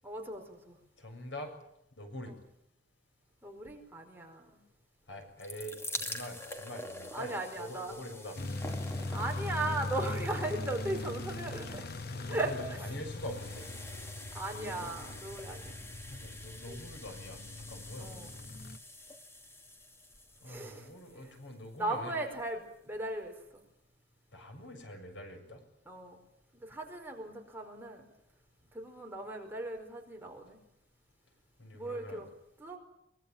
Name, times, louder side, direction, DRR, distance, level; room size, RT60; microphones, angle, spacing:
voice 1, 0.0-0.8 2.2-2.3 3.4-4.6 7.1-7.9 9.1-11.9 12.3-12.8 14.3-15.8 16.7-16.8 18.0-18.3 20.4-20.9 21.2-21.3 21.7-23.6 25.9-26.2 26.5-28.0 28.7-30.6 31.7-32.3 32.6-32.8, right 2 dB, 10° right, 2 dB, 4.7 m, -37 dB
voice 2, 1.0-1.5 2.0-2.3 5.1-8.4 12.1-13.6 14.5-14.9 16.1-18.3 20.4-22.2 24.3-25.6 31.6-32.2, equal, 70° left, 5 dB, 7.3 m, -45 dB
sound 1, 5.1-22.2 22.9-23.0 23.2-23.3, left 1 dB, 15° left, 2.5 m, -47 dB
sound 2, 8.4-18.8, left 2 dB, 55° left, 1.1 m, -40 dB
23.5 x 23.0 x 9.1 m, 0.81 s
head